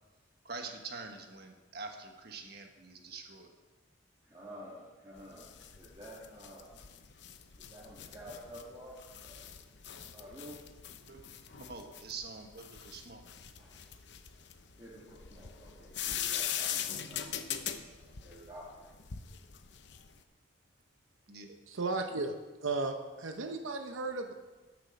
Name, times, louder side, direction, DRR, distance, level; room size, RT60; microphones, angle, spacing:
voice 1, 0.4-3.5 11.1-11.3 11.6-13.2 21.3-21.5, right 4 dB, 50° right, 4 dB, 1.4 m, -45 dB
voice 2, 4.2-6.8 7.5-9.4 10.1-10.6 13.6-13.8 14.8-18.9, equal, 20° right, -9 dB, 2.4 m, -50 dB
sound 1, 5.2-20.2, left 9 dB, 60° left, 0.8 m, -41 dB
voice 3, 21.7-22.3 22.6-24.3, right 3 dB, 80° right, 6 dB, 0.8 m, -35 dB
14.0 x 7.5 x 5.3 m, 1.2 s
head